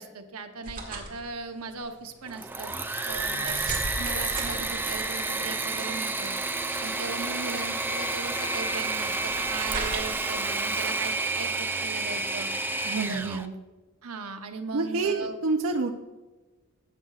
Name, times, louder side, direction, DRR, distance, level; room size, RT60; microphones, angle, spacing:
voice 1, 0.0-2.7 3.0-3.6 4.0-6.3 6.8-12.5 12.9-13.4 14.0-15.4, right 4 dB, 90° right, 6 dB, 0.9 m, -38 dB
sound 1, 0.6-11.0, right 2 dB, 40° right, 1.8 m, -39 dB
Engine / Mechanisms, 2.3-13.5, right 3 dB, 10° right, 0.4 m, -30 dB
voice 2, 12.8-13.6 14.7-16.0, right 3 dB, 65° right, 4 dB, 0.5 m, -28 dB
13.0 x 8.4 x 2.4 m, 1.2 s
head